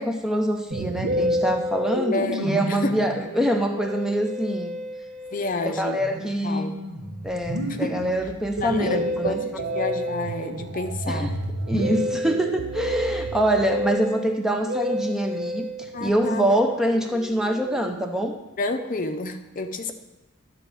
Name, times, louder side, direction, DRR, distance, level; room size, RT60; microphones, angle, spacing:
voice 1, 0.0-4.7 5.6-6.7 7.2-9.4 11.1-11.3 11.7-18.4, right 1 dB, ahead, 4 dB, 0.5 m, -25 dB
Musical instrument, 0.7-18.3, equal, 85° right, 1.1 m, -31 dB
voice 2, 2.1-3.1 5.3-6.1 6.4-6.8 7.8-8.1 8.6-11.3 15.9-16.6 18.6-19.9, left 3 dB, 40° left, 8 dB, 0.6 m, -30 dB
sound 1, 8.6-13.9, right 5 dB, 55° right, 0.3 m, -34 dB
11.5 x 4.1 x 6.9 m, 1.0 s
head